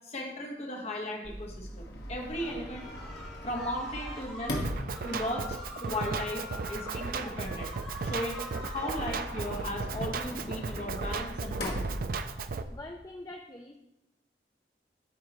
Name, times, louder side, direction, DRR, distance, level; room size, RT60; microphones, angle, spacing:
voice 1, 0.1-2.9 3.4-4.6 5.0-7.7 8.0-12.0, left 1 dB, 35° left, 0 dB, 1.4 m, -36 dB
Sliding door, 1.2-12.8, equal, 70° left, 1.3 m, -41 dB
sound 1, 2.3-9.7, equal, 5° left, 3.1 m, -44 dB
Drum kit, 4.6-12.6, right 4 dB, 50° right, 0.4 m, -36 dB
voice 2, 12.7-13.8, left 1 dB, 20° left, 3 dB, 0.4 m, -44 dB
12.5 x 4.7 x 3.0 m, 0.89 s
head